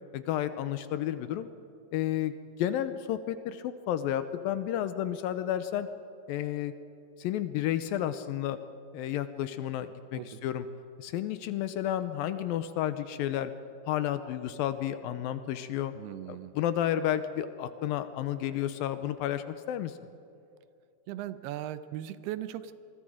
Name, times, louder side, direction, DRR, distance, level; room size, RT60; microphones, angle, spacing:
voice 1, 0.1-1.5 1.9-5.9 6.3-6.7 7.2-8.6 8.9-10.7 11.0-13.5 13.9-15.9 16.3-19.9, left 11 dB, 80° left, 11 dB, 2.3 m, -31 dB
voice 2, 15.9-16.5 21.1-22.7, right 12 dB, 90° right, 13 dB, 2.8 m, -38 dB
27.5 x 22.0 x 5.0 m, 2.6 s
omnidirectional pair, 4.4 m